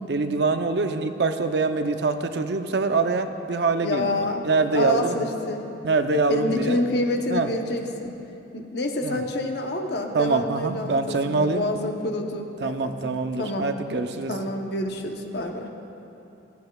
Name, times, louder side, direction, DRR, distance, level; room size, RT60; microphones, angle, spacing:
voice 1, 0.1-5.2 5.8-6.8 7.3-7.5 9.0-9.2 10.1-11.7 12.6-14.3, right 3 dB, 65° right, 7 dB, 0.6 m, -24 dB
voice 2, 3.8-4.4 4.7-5.7 6.3-8.2 8.5-12.9 13.4-13.7 14.3-15.7, left 1 dB, 60° left, 3 dB, 0.8 m, -27 dB
16.0 x 15.0 x 2.3 m, 2.9 s
head